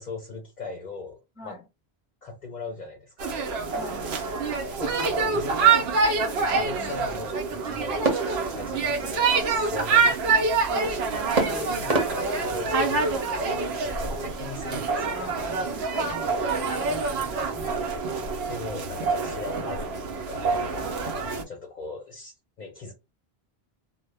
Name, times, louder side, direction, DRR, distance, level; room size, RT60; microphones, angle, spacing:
voice 1, 0.0-1.2 1.4-1.6 2.2-3.4 4.7-5.9 6.5-8.1 8.5-10.2 11.4-15.2 18.5-20.9 21.5-22.9, left 4 dB, 55° left, 0.6 m, -39 dB
sound 1, 3.2-21.4, right 4 dB, 85° right, 0.8 m, -26 dB
voice 2, 3.7-4.0 10.7-11.0 15.1-17.7 20.8-20.9, left 2 dB, 5° right, 0.6 m, -44 dB
sound 2, 8.0-9.6 11.4-13.4, right 3 dB, 40° right, 0.8 m, -30 dB
2.1 x 2.0 x 3.3 m
omnidirectional pair, 1.0 m